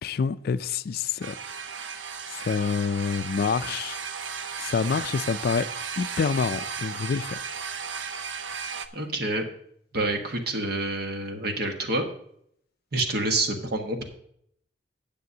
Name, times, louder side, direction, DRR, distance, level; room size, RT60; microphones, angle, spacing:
voice 1, 0.0-1.3 2.3-4.0 4.6-5.7 6.0-7.5, left 5 dB, 55° left, 0.3 m, -27 dB
sound 1, 1.2-8.9, right 6 dB, 85° right, 0.7 m, -35 dB
voice 2, 8.9-9.4 9.9-12.1 12.9-14.0, right 2 dB, 60° right, 1.4 m, -27 dB
17.0 x 6.8 x 2.8 m
head